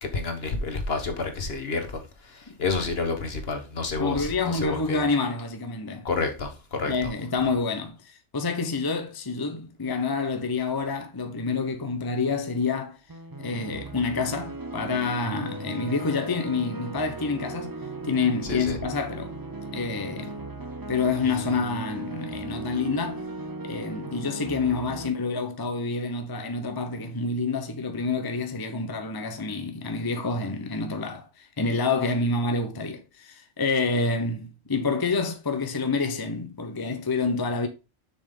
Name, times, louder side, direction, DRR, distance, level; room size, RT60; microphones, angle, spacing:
voice 1, 0.0-5.0 6.0-7.1 18.4-18.8, left 3 dB, 60° left, 1.6 m, -30 dB
voice 2, 4.0-6.1 6.8-13.0 13.4-17.7 18.0-19.3 19.7-20.4 20.9-23.2 23.6-37.7, left 4 dB, 20° left, 0.8 m, -28 dB
sound 1, 13.1-25.1, right 2 dB, 25° right, 0.5 m, -37 dB
7.0 x 6.3 x 3.8 m
omnidirectional pair, 1.2 m